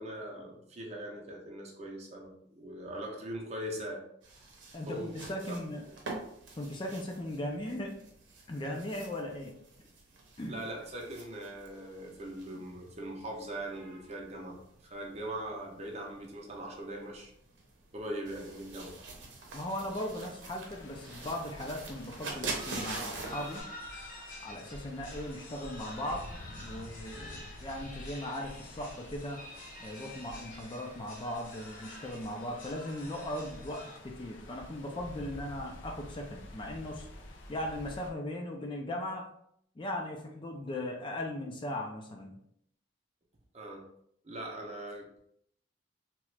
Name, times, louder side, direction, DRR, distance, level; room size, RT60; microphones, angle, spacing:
voice 1, 0.0-4.0 4.8-5.2 5.5-5.6 10.5-17.3 17.9-18.9 43.5-43.8 44.2-45.0, right 1 dB, 35° right, 0 dB, 0.6 m, -41 dB
sound 1, 4.2-23.6, right 3 dB, 80° right, 0.7 m, -46 dB
voice 2, 4.7-5.9 6.6-7.9 8.5-9.5 10.4-10.6 19.5-23.6 24.4-26.3 26.6-29.4 29.8-37.1 37.5-39.3 39.8-42.4, left 1 dB, 25° left, 1 dB, 0.4 m, -38 dB
sound 2, 20.7-38.1, left 1 dB, 80° left, 0.5 m, -50 dB
sound 3, 22.2-34.0, left 1 dB, 45° left, 0.8 m, -49 dB
2.9 x 2.3 x 3.2 m, 0.70 s
head